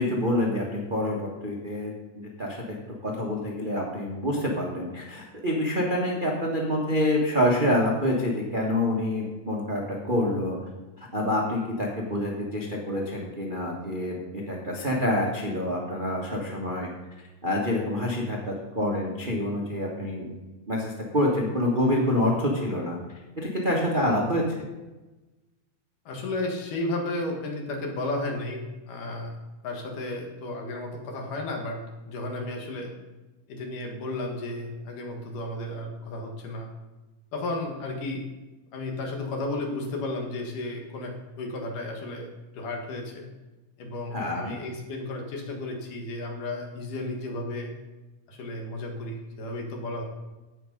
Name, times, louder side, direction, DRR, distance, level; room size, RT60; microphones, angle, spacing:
voice 1, 0.0-2.6 3.0-9.8 10.1-10.6 11.0-16.9 17.4-20.3 20.7-23.0 23.4-24.4 44.1-44.5, left 1 dB, 65° right, -2 dB, 0.5 m, -27 dB
voice 2, 26.1-29.3 29.6-33.0 33.5-36.7 37.3-38.3 38.7-43.3 43.8-47.8 48.3-50.0, left 2 dB, 70° left, 2 dB, 3.1 m, -33 dB
16.0 x 6.1 x 5.3 m, 1.1 s
omnidirectional pair, 3.9 m